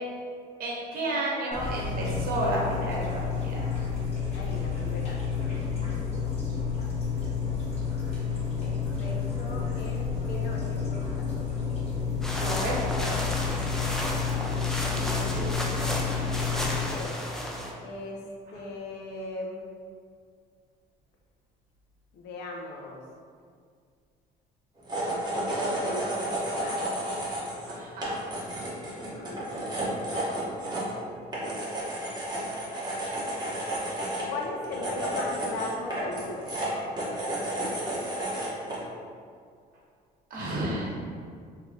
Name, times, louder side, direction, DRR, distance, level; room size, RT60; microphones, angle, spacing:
voice 1, 0.6-3.6 12.4-12.7 13.0-14.0 14.9-15.1 15.3-15.5 27.7-28.1 40.3-41.1, right 1 dB, 60° right, -4 dB, 1.0 m, -32 dB
sound 1, 1.5-16.8, left 6 dB, 35° left, 1.1 m, -30 dB
voice 2, 4.3-5.3 8.6-11.5 16.5-17.2 17.8-19.6 22.1-23.0 24.9-26.9 29.1-29.8 34.3-36.5, left 2 dB, 85° left, 0 dB, 0.6 m, -38 dB
sound 2, 12.2-17.7, equal, 5° left, 0.4 m, -33 dB
sound 3, 24.8-38.8, right 1 dB, 25° right, 1.0 m, -32 dB
3.1 x 2.8 x 3.5 m, 2.1 s
cardioid pair, 110°, 17 cm